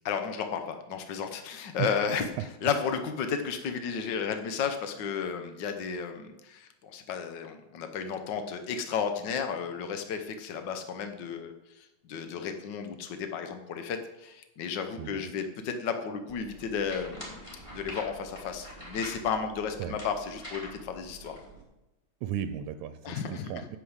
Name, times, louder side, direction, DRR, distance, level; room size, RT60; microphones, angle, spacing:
voice 1, 0.0-2.3 2.6-17.4 17.7-21.4 23.0-23.5, left 6 dB, 75° left, 7 dB, 1.0 m, -33 dB
voice 2, 15.0-15.3 19.8-20.0 22.2-23.8, right 10 dB, 80° right, 10 dB, 2.0 m, -35 dB
sound 1, 16.3-21.6, right 1 dB, 10° left, 3.8 m, -45 dB
11.0 x 7.0 x 8.0 m, 0.95 s
omnidirectional pair, 3.4 m